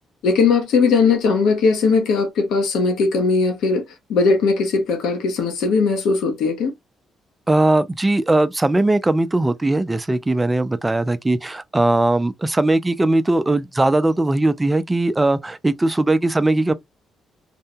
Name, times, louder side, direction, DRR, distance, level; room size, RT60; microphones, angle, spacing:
voice 1, 0.2-3.8 4.1-6.7, left 4 dB, 85° left, 0.9 m, -18 dB
voice 2, 7.5-16.7, right 2 dB, 15° right, 0.4 m, -19 dB
2.7 x 2.2 x 2.7 m
cardioid pair, 90°, 0 cm